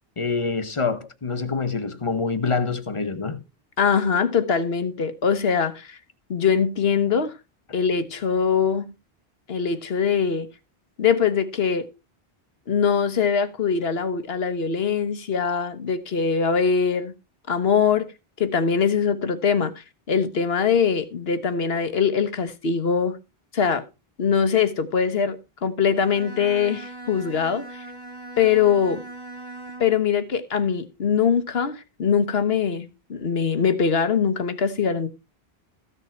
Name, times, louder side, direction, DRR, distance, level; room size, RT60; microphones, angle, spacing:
voice 1, 0.2-3.4, left 4 dB, 30° left, 1.0 m, -26 dB
voice 2, 3.8-6.0 6.3-7.4 7.7-8.8 9.5-10.5 11.0-11.9 12.7-17.1 17.5-18.1 18.4-23.2 23.5-23.8 24.2-27.8 28.4-29.0 29.8-35.1, left 6 dB, 75° left, 1.4 m, -22 dB
Bowed string instrument, 25.9-30.1, right 2 dB, 25° right, 1.7 m, -40 dB
14.5 x 6.7 x 4.4 m
omnidirectional pair, 1.0 m